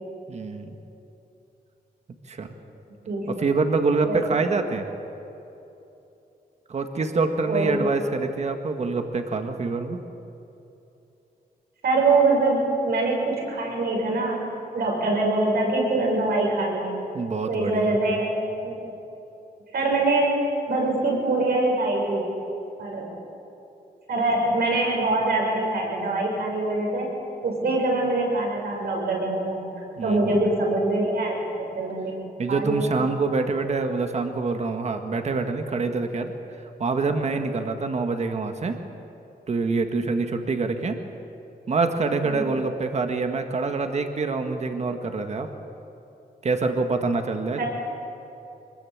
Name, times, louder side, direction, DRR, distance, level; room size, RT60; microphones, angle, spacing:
voice 1, 0.3-0.8 2.3-2.5 3.4-4.9 6.7-10.0 17.1-18.0 30.0-30.4 32.4-36.3 36.8-38.7 39.5-41.0 41.7-45.5 46.4-47.6, right 4 dB, 45° right, 6 dB, 1.7 m, -26 dB
voice 2, 3.1-3.5 4.0-4.2 7.5-7.9 11.8-14.4 14.7-17.0 17.5-18.3 18.6-18.8 19.7-20.4 20.6-22.3 22.8-23.1 24.1-27.1 27.4-29.7 30.0-32.2 32.5-32.9 42.2-42.4 47.6-47.7, right 2 dB, 75° right, -1 dB, 7.1 m, -24 dB
26.0 x 21.5 x 8.7 m, 2.9 s
wide cardioid pair, 165°, 16 cm